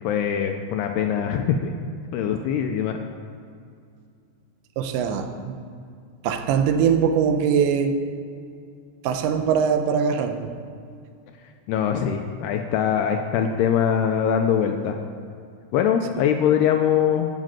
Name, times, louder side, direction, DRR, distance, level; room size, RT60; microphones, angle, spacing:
voice 1, 0.0-1.7 2.1-3.0 11.7-15.0 15.7-17.4, left 8 dB, 80° left, 5 dB, 2.4 m, -22 dB
voice 2, 4.8-5.6 6.2-8.0 9.0-10.5, right 7 dB, 90° right, 6 dB, 3.0 m, -22 dB
12.5 x 6.5 x 7.6 m, 2.3 s
omnidirectional pair, 5.2 m